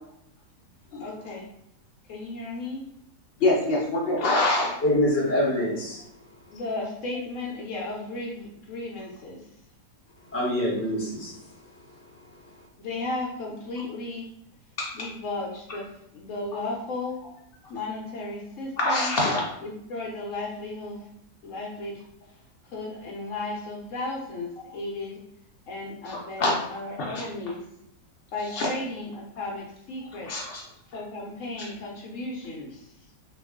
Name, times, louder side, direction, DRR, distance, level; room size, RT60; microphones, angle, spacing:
voice 1, 1.0-1.5 2.1-2.9 6.5-9.4 12.8-14.2 14.9-17.2 17.7-19.1 19.6-21.0 21.4-22.0 22.6-25.2 25.7-27.6 28.3-30.3 30.9-32.9, left 2 dB, 65° left, -1 dB, 0.8 m, -34 dB
voice 2, 3.4-4.7 14.8-15.1 18.8-19.4 26.0-26.6 27.0-27.2 28.6-28.7 30.3-30.6 31.6-31.7, left 2 dB, 85° left, -3 dB, 0.5 m, -25 dB
voice 3, 4.8-6.0 10.3-11.4, left 1 dB, 20° left, -5 dB, 0.4 m, -25 dB
2.9 x 2.3 x 3.5 m, 0.76 s
omnidirectional pair, 1.8 m